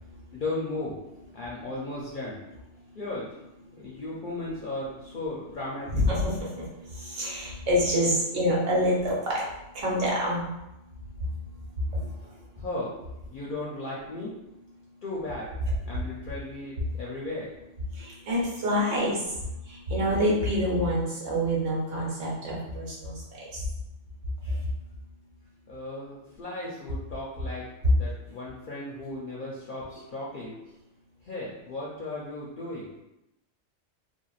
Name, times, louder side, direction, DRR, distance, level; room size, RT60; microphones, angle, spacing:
voice 1, 0.3-1.0 1.3-2.4 3.0-3.3 3.7-5.9 12.6-14.4 15.0-15.5 15.8-17.5 25.7-27.7 27.9-30.6 31.2-32.9, left 2 dB, 60° left, -5 dB, 0.6 m, -36 dB
voice 2, 5.9-6.7 6.9-9.4 9.7-10.5 11.9-12.0 18.0-19.2 19.7-23.1, equal, 85° right, -5 dB, 1.2 m, -26 dB
3.3 x 2.2 x 2.3 m, 0.90 s
omnidirectional pair, 1.2 m